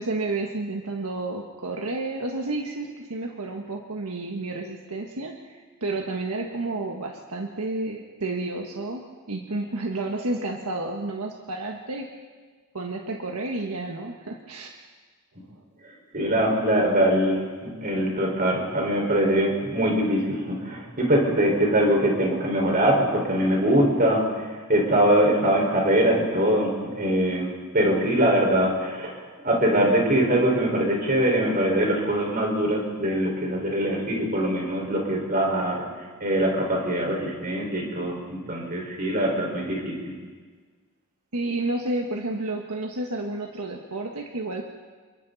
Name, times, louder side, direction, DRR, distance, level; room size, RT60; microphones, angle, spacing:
voice 1, 0.0-12.1 12.7-14.7 41.3-44.7, right 2 dB, 80° right, 2 dB, 1.5 m, -31 dB
voice 2, 16.1-35.8 36.2-40.1, right 1 dB, 40° right, -1 dB, 5.1 m, -23 dB
28.0 x 23.0 x 4.2 m, 1.5 s
head